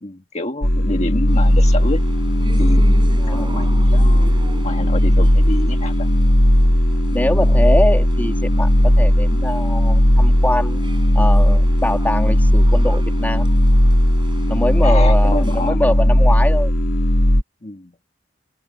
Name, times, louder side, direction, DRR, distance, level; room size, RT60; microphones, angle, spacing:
voice 1, 0.0-2.0 2.6-4.3 4.6-6.1 14.5-15.8 17.6-17.9, left 2 dB, 40° left, 1.6 m, -28 dB
sound 1, 0.6-17.4, left 1 dB, 65° left, 2.3 m, -15 dB
sound 2, 1.3-15.7, right 1 dB, 25° right, 8.0 m, -40 dB
voice 2, 3.2-3.6 7.1-10.8 11.1-13.5 14.5-16.7, left 1 dB, 10° left, 2.3 m, -23 dB
open air
head